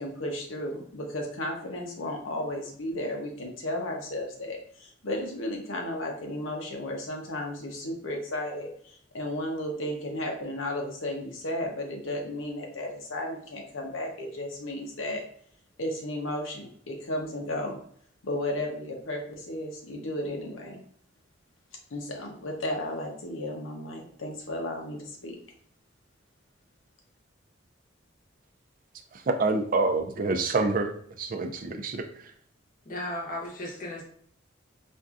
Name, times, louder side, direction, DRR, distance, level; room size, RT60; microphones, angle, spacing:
voice 1, 0.0-15.2 15.8-17.8 18.2-20.8 21.9-25.4, left 1 dB, 90° left, 1 dB, 0.9 m, -34 dB
voice 2, 29.1-32.3, right 3 dB, 45° right, 6 dB, 0.4 m, -27 dB
voice 3, 32.8-34.0, left 1 dB, 45° left, -1 dB, 0.8 m, -35 dB
4.3 x 2.6 x 2.4 m, 0.62 s
head